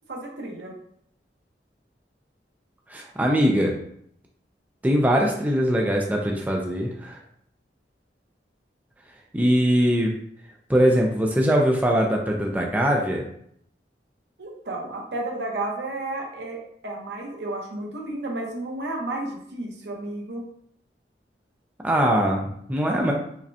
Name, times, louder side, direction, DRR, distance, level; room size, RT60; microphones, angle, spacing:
voice 1, 0.1-0.7 14.4-20.4, right 2 dB, 75° right, 0 dB, 0.9 m, -32 dB
voice 2, 2.9-3.7 4.8-7.2 9.3-10.1 10.7-13.3 21.8-23.1, equal, 10° right, 0 dB, 0.4 m, -21 dB
4.8 x 2.2 x 2.7 m, 0.68 s
head